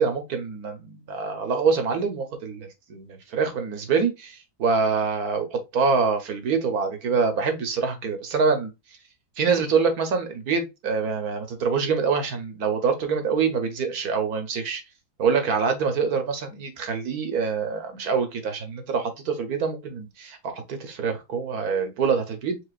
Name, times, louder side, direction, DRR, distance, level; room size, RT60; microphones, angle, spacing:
voice 1, 0.0-8.7 9.4-14.8 15.2-22.6, right 5 dB, 60° right, 1.4 m, -25 dB
5.0 x 3.9 x 2.3 m
omnidirectional pair, 2.0 m